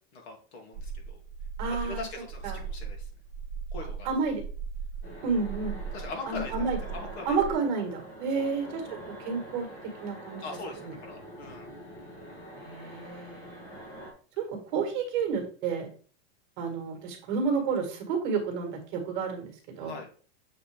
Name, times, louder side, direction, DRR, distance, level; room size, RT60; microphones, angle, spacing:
voice 1, 0.1-1.2 1.7-3.1 3.7-4.1 5.9-6.5 6.9-7.4 8.3-8.5 10.4-11.7 19.8-20.1, left 3 dB, 90° left, 2 dB, 2.1 m, -41 dB
sound 1, 0.7-7.5, right 6 dB, 30° right, 0.9 m, -38 dB
voice 2, 1.6-2.0 2.4-2.6 4.1-4.4 5.2-5.8 6.3-6.8 7.3-8.8 9.2-9.7 10.0-10.5 10.8-10.9 12.6-13.7 14.4-14.5 14.7-15.9 16.6-19.9, right 5 dB, 45° right, 3 dB, 1.7 m, -30 dB
sound 2, 5.0-14.1, equal, 25° left, 1.5 m, -45 dB
6.9 x 4.1 x 3.4 m, 0.42 s
supercardioid pair, 175°, 32 cm